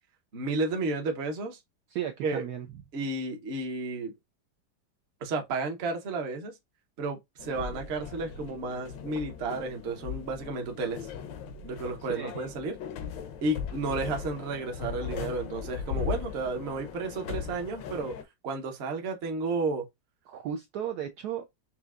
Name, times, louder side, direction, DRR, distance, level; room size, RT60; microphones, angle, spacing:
voice 1, 0.3-1.6 2.2-2.4 2.9-4.2 5.2-6.5 7.0-11.1 11.6-12.8 13.4-18.1 18.4-19.8, right 3 dB, 45° right, 1.0 m, -32 dB
voice 2, 1.9-2.7 12.1-12.3 20.3-21.5, right 9 dB, 70° right, 1.0 m, -35 dB
sound 1, 7.4-18.2, left 8 dB, 80° left, 1.4 m, -38 dB
5.7 x 2.7 x 2.4 m
omnidirectional pair, 2.0 m